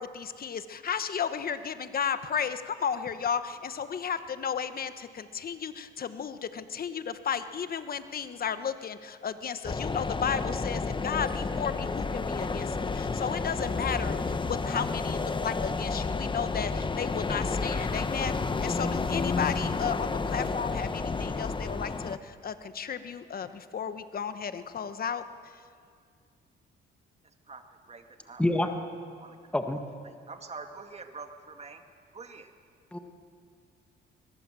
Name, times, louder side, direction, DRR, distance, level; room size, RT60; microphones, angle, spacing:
voice 1, 0.0-18.3 18.6-25.6, left 7 dB, 50° left, 11 dB, 1.2 m, -34 dB
sound 1, 9.6-22.2, left 4 dB, 25° left, 1.0 m, -31 dB
voice 2, 27.5-28.4 29.2-29.4 30.0-31.8 32.1-32.5, right 4 dB, 30° right, 6 dB, 2.1 m, -45 dB
voice 3, 28.4-28.7 29.5-29.9 32.9-33.0, left 1 dB, 5° left, 5 dB, 1.5 m, -26 dB
22.5 x 21.0 x 7.7 m, 2.2 s
cardioid pair, 90°, 20 cm